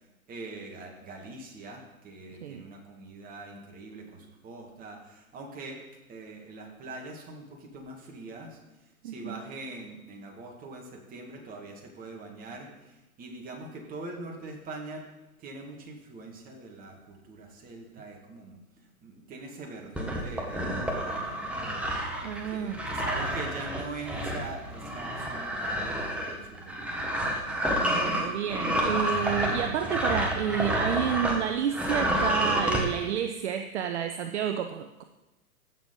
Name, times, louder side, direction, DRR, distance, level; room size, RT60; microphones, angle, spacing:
voice 1, 0.3-5.8 6.1-8.6 9.0-15.0 15.4-18.6 19.0-21.9 22.5-27.1 28.6-29.0, right 3 dB, 20° right, 1 dB, 1.9 m, -43 dB
voice 2, 9.0-9.4 22.2-22.8 27.8-35.0, right 9 dB, 50° right, 7 dB, 0.7 m, -30 dB
sound 1, 19.9-31.4 31.7-32.8, equal, 5° right, 1.1 m, -29 dB
15.0 x 6.5 x 3.9 m, 1.0 s
hypercardioid pair, 130°, 44 cm